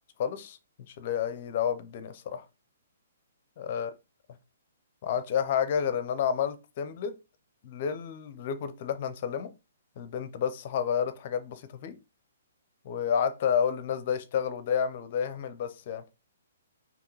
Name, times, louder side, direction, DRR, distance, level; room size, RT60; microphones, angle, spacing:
voice 1, 0.2-0.6 0.9-2.4 3.6-3.9 5.0-7.1 7.6-9.5 10.0-12.0 12.8-16.0, left 8 dB, 45° left, 0.6 m, -30 dB
4.6 x 2.9 x 3.0 m
figure-of-eight pair, 130°, 0 cm